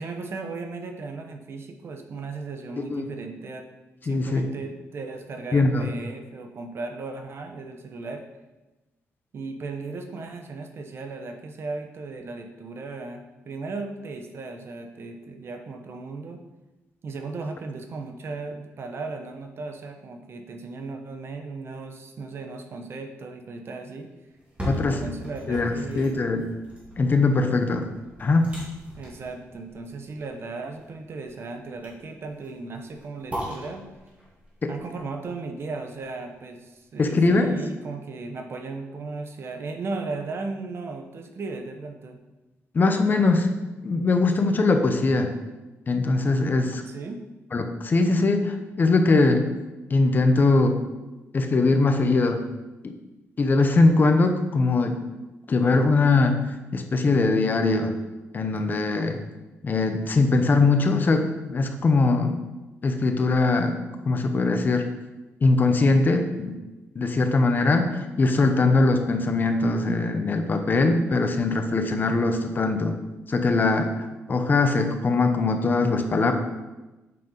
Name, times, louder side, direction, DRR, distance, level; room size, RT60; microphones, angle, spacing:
voice 1, 0.0-3.7 4.0-8.2 9.3-16.4 17.0-24.1 24.7-26.2 29.0-33.8 34.7-42.2 46.8-47.2, right 3 dB, 50° right, 5 dB, 0.9 m, -36 dB
voice 2, 4.1-4.5 5.5-5.9 24.6-25.0 25.5-26.5 27.0-27.9 28.2-28.5 34.6-34.7 37.0-37.5 42.7-43.5 43.8-45.3 45.9-46.8 47.5-49.4 49.9-50.8 51.3-52.4 52.8-52.9 53.4-55.0 55.5-56.4 56.7-57.9 58.3-59.2 59.6-62.4 62.8-63.8 64.1-64.9 65.4-66.6 67.0-72.9 73.3-73.9 74.3-76.3, left 3 dB, 35° left, 6 dB, 0.8 m, -21 dB
sound 1, 24.3-36.3 36.8-36.9, equal, 25° right, 2.5 m, -39 dB
7.6 x 5.4 x 3.9 m, 1.1 s
cardioid pair, 100°, 5 cm